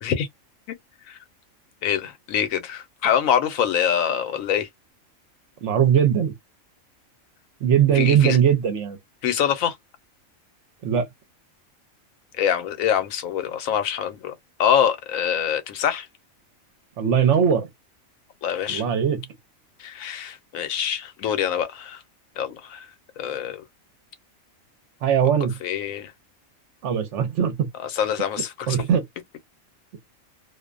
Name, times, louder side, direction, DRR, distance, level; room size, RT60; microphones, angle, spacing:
voice 1, 1.8-4.7 7.9-8.4 9.2-9.8 12.4-14.3 14.6-16.1 18.4-18.8 19.8-22.0 22.4-22.9 23.2-23.6 25.6-26.1 27.8-28.8, left 9 dB, 80° left, 1.0 m, -25 dB
voice 2, 5.6-6.3 7.6-9.0 10.8-11.1 17.0-17.7 18.7-19.2 25.0-25.6 26.8-27.7 28.7-29.0, right 8 dB, 65° right, 0.9 m, -20 dB
2.5 x 2.1 x 2.3 m
omnidirectional pair, 1.4 m